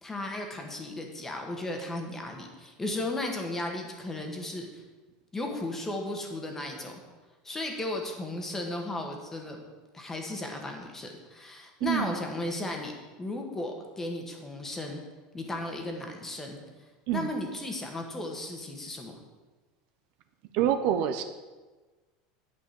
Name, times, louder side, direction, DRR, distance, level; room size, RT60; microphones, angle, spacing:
voice 1, 0.0-4.8 5.3-7.0 7.4-9.6 9.9-12.9 13.2-15.0 15.3-16.6 17.1-19.2, left 2 dB, 10° left, 2 dB, 1.6 m, -35 dB
voice 2, 11.8-12.2 17.1-17.4 20.5-21.2, right 10 dB, 55° right, 8 dB, 0.8 m, -27 dB
9.4 x 5.3 x 8.1 m, 1.3 s
supercardioid pair, 150°, 3 cm